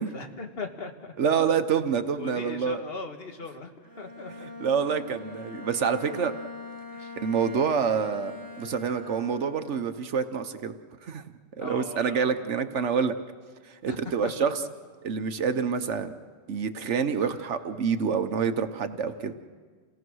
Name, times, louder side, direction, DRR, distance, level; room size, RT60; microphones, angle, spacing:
voice 1, 0.1-1.2 2.2-4.5 6.9-7.1 11.6-12.3 13.9-14.5 17.2-17.5, left 3 dB, 50° left, 4 dB, 1.7 m, -39 dB
voice 2, 1.2-2.8 4.4-6.3 7.2-10.8 11.0-11.2 11.6-13.2 13.7-14.5 15.0-16.1 16.5-19.3, right 6 dB, 65° right, 9 dB, 1.2 m, -27 dB
Bowed string instrument, 3.8-9.9, left 3 dB, 15° left, 1.4 m, -42 dB
29.0 x 17.5 x 6.3 m, 1.5 s
omnidirectional pair, 1.3 m